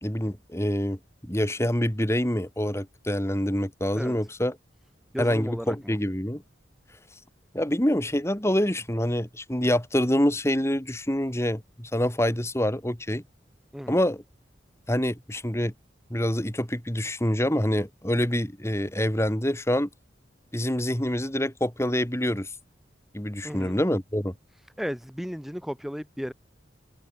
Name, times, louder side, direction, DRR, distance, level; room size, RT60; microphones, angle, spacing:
voice 1, 0.0-4.5 5.2-6.4 7.5-13.2 13.9-14.2 14.9-15.7 16.1-19.9 20.5-22.5 23.1-24.3, left 1 dB, 15° left, 2.7 m, -26 dB
voice 2, 5.1-6.0 13.7-14.0 23.4-23.8 24.8-26.3, equal, ahead, 7.9 m, -34 dB
open air
head